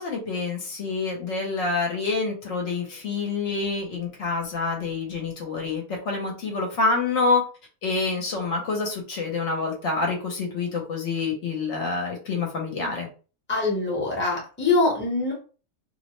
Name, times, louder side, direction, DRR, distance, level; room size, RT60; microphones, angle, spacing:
voice 1, 0.0-7.4 7.8-13.1, left 4 dB, 65° left, 0 dB, 1.0 m, -27 dB
voice 2, 13.5-15.3, left 3 dB, 10° left, -2 dB, 0.7 m, -23 dB
2.6 x 2.1 x 2.9 m, 0.37 s
omnidirectional pair, 1.4 m